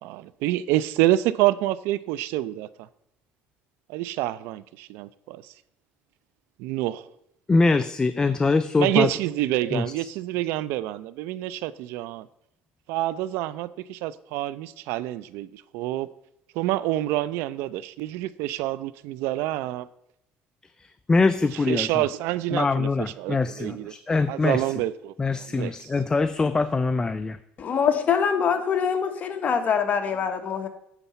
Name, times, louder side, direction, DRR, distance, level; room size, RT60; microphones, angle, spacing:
voice 1, 0.0-2.7 3.9-5.5 6.6-7.1 8.8-12.3 12.9-16.1 16.5-19.9 21.7-22.9 23.2-23.9 24.3-25.7, right 15 dB, 85° right, 17 dB, 0.4 m, -27 dB
voice 2, 7.5-9.1 9.7-10.1 20.8-22.0 22.5-24.7 25.2-27.4, left 3 dB, 20° left, 12 dB, 0.3 m, -23 dB
voice 3, 27.6-30.7, left 7 dB, 40° left, 6 dB, 1.1 m, -24 dB
9.8 x 4.1 x 5.6 m, 0.78 s
cardioid pair, 120°, 4 cm